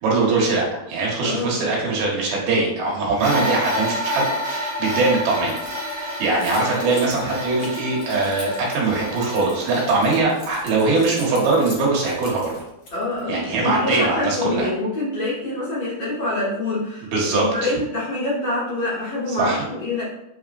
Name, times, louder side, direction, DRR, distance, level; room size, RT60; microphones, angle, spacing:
voice 1, 0.0-12.5 13.3-14.7 17.1-17.7 19.3-19.6, right 3 dB, 70° right, -4 dB, 3.1 m, -22 dB
voice 2, 1.2-1.6 12.9-20.0, left 2 dB, 45° left, -11 dB, 2.2 m, -26 dB
sound 1, 3.2-10.2, equal, 35° right, 1.7 m, -29 dB
Keys jangling, 5.5-13.2, left 2 dB, 80° left, 1.0 m, -42 dB
8.1 x 4.6 x 2.5 m, 0.86 s
omnidirectional pair, 4.8 m